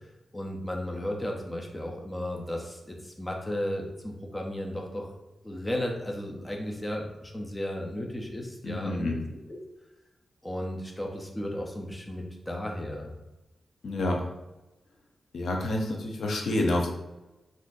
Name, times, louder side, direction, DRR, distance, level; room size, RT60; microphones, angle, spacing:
voice 1, 0.3-5.1 5.4-9.1 9.5-9.6 10.4-13.1, left 1 dB, 10° left, 0 dB, 0.4 m, -34 dB
voice 2, 8.6-9.2 13.8-14.3 15.3-16.9, left 1 dB, 75° left, 0 dB, 0.5 m, -28 dB
3.7 x 2.4 x 2.5 m, 1.0 s
wide cardioid pair, 135°, 0 cm